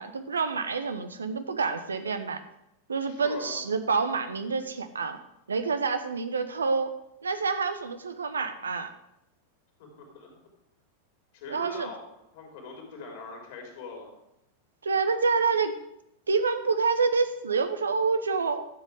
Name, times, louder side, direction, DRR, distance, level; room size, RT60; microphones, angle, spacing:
voice 1, 0.0-2.4 2.9-5.2 5.5-6.9 7.2-8.9 11.5-11.9 14.8-15.8 16.3-18.6, right 4 dB, 70° right, 9 dB, 0.9 m, -27 dB
voice 2, 3.0-3.6 9.8-10.3 11.3-14.1, left 3 dB, 50° left, 1 dB, 3.6 m, -42 dB
12.5 x 7.5 x 4.9 m, 0.83 s
figure-of-eight pair, 90°, 0 cm